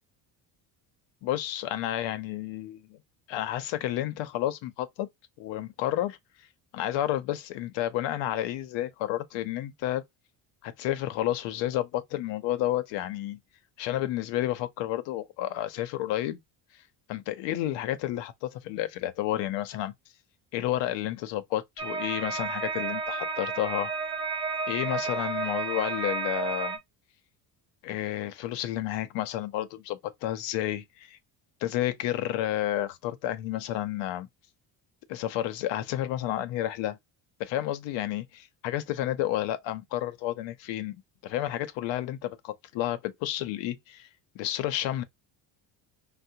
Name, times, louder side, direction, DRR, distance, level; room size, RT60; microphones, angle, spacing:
voice 1, 1.2-3.0 3.3-5.1 5.4-6.5 6.7-10.0 10.6-13.4 13.8-16.4 16.7-16.8 17.1-19.9 20.5-23.9 24.7-26.8 27.8-31.2 31.6-34.3 35.1-37.0 37.4-41.0 41.2-44.1 44.3-45.0, left 13 dB, 85° left, 0.7 m, -31 dB
sound 1, 21.8-26.8, right 4 dB, 10° right, 0.4 m, -32 dB
3.5 x 2.1 x 2.7 m
cardioid pair, 105°, 43 cm